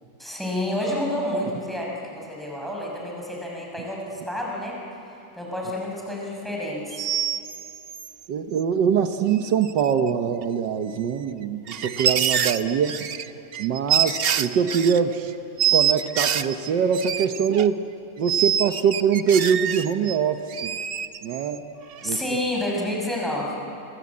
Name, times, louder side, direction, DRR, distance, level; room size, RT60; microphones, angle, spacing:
voice 1, 0.2-4.8 5.1-7.1 22.0-23.7, left 1 dB, ahead, -2 dB, 6.2 m, -29 dB
sound 1, 6.9-8.1 9.3-9.4 9.7-10.1 10.4-10.5 11.4-15.0 15.6-17.7 18.3-20.2 20.5-21.6 21.9-22.2, right 9 dB, 65° right, 0.6 m, -25 dB
voice 2, 8.3-13.1 13.6-15.3 15.7-17.9 18.2-20.7 21.2-21.7 22.0-22.2, right 7 dB, 80° right, 8 dB, 1.6 m, -23 dB
28.0 x 24.0 x 8.5 m, 2.9 s
omnidirectional pair, 1.9 m